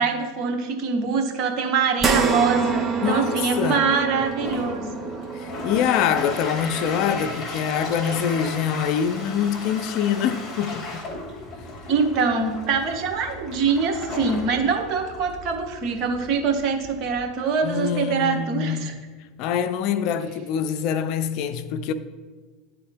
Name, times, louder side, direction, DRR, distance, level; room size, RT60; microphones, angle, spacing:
voice 1, 0.0-4.9 11.9-18.9, right 5 dB, 50° right, 1.1 m, -24 dB
sound 1, 2.0-10.6 11.1-11.2 12.6-12.7, right 5 dB, 25° right, 0.8 m, -29 dB
voice 2, 3.0-3.8 5.3-11.1 17.6-18.9 19.4-21.9, left 8 dB, 60° left, 0.5 m, -25 dB
Toilet flush, 4.2-17.3, left 2 dB, 35° left, 1.7 m, -36 dB
10.5 x 3.6 x 3.5 m
hypercardioid pair, 95°, 0 cm